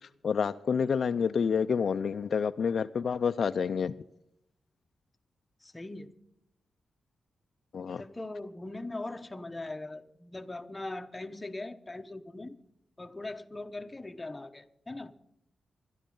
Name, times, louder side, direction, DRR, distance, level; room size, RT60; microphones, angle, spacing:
voice 1, 0.2-3.9 7.7-8.0, left 6 dB, 55° left, 10 dB, 0.4 m, -28 dB
voice 2, 5.6-6.2 8.0-12.6 13.0-15.2, left 2 dB, 15° left, 8 dB, 0.8 m, -40 dB
22.0 x 12.5 x 3.8 m, 0.77 s
wide cardioid pair, 145°, 0 cm